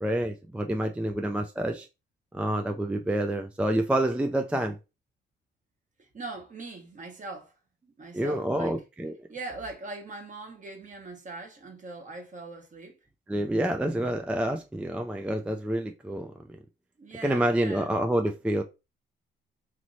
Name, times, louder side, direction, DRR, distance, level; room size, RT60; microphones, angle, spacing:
voice 1, 0.0-1.9 2.3-4.8 8.1-9.1 13.3-16.6 17.2-18.6, right 1 dB, 5° right, 0.3 m, -28 dB
voice 2, 6.0-7.5 7.8-8.8 9.3-13.0 17.0-17.9, right 3 dB, 40° right, 1.2 m, -41 dB
3.1 x 3.0 x 2.6 m
cardioid pair, 90°, 20 cm